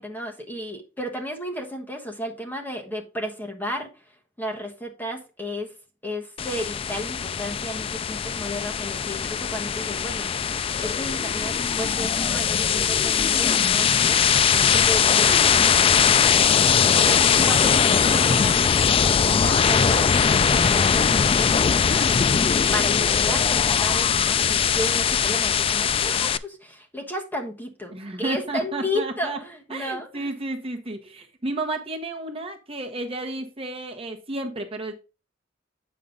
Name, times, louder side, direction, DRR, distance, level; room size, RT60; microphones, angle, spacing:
voice 1, 0.0-3.9 4.4-5.7 6.0-14.4 14.7-16.2 16.9-22.4 22.7-30.3, equal, 10° left, 1.2 m, -33 dB
sound 1, 6.4-26.4, left 7 dB, 30° left, 0.3 m, -20 dB
voice 2, 14.3-14.8 16.6-16.7 22.4-22.8 27.9-29.4 29.7-34.9, right 2 dB, 30° right, 1.1 m, -32 dB
8.5 x 5.4 x 3.7 m
head